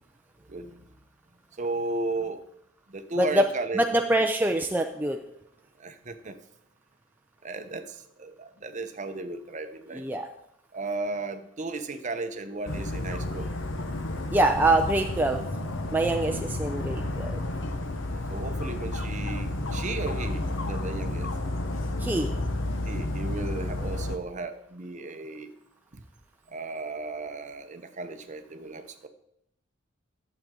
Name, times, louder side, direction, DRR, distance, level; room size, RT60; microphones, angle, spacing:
voice 1, 0.5-0.9 1.6-2.4 2.9-3.9 4.4-4.5 5.8-6.4 7.4-10.0 10.7-13.5 14.6-14.7 16.3-16.4 18.3-21.3 22.8-25.5 25.9-26.0 26.5-29.1, right 3 dB, 40° right, 9 dB, 0.7 m, -35 dB
voice 2, 3.7-5.2 9.9-10.3 14.3-15.4 15.9-17.4 22.0-22.3, right 1 dB, 10° right, 3 dB, 0.4 m, -24 dB
Dog, 12.7-24.2, left 1 dB, 65° left, 0.9 m, -31 dB
12.0 x 7.6 x 3.8 m, 0.75 s
head